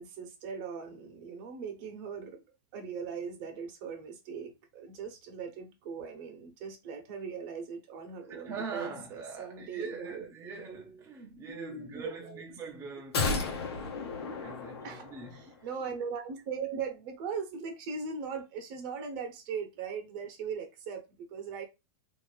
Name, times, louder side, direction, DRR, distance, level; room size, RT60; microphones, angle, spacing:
voice 1, 0.0-2.4 2.7-10.3 11.5-12.4 14.8-15.1 15.3-21.6, right 6 dB, 50° right, 1.0 m, -39 dB
voice 2, 8.3-13.9 14.3-15.7, right 4 dB, 20° right, 0.6 m, -43 dB
sound 1, 13.1-15.5 15.8-15.9, left 4 dB, 85° left, 0.9 m, -33 dB
2.7 x 2.6 x 3.2 m
supercardioid pair, 135°, 13 cm